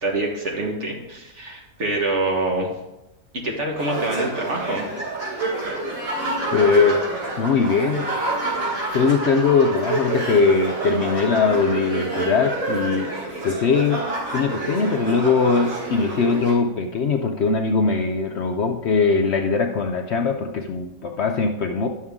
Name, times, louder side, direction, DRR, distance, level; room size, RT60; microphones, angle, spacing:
voice 1, 0.0-2.7 3.4-4.9, right 2 dB, 50° right, 0 dB, 1.7 m, -25 dB
sound 1, 3.8-16.5, right 2 dB, 75° right, 3.7 m, -28 dB
voice 2, 6.5-7.0 7.4-8.1 8.9-13.1 13.4-14.0 14.3-21.9, left 4 dB, 60° left, 4 dB, 0.7 m, -20 dB
11.0 x 6.5 x 3.6 m, 0.93 s
omnidirectional pair, 1.5 m